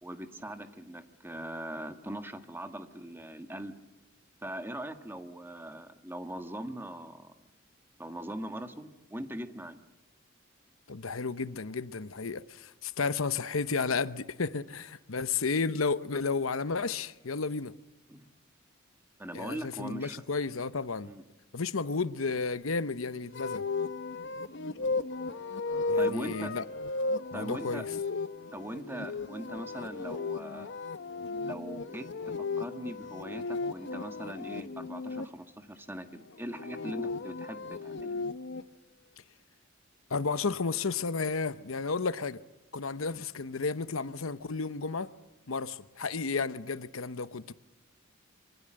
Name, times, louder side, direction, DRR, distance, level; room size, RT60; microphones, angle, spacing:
voice 1, 0.0-3.8 4.4-7.3 8.0-9.8 18.1-18.2 19.2-20.2 21.0-21.2 24.7-24.9 26.0-26.5 27.3-27.9 28.5-30.7 31.4-38.1, right 1 dB, 10° right, 1.6 m, -41 dB
voice 2, 10.9-17.7 19.3-21.1 21.5-23.6 25.9-26.6 27.3-27.8 40.1-42.4 42.7-45.1 45.5-47.5, left 4 dB, 85° left, 0.9 m, -32 dB
sound 1, 23.3-35.3 36.4-38.6, left 3 dB, 60° left, 0.9 m, -35 dB
26.5 x 24.5 x 7.7 m
head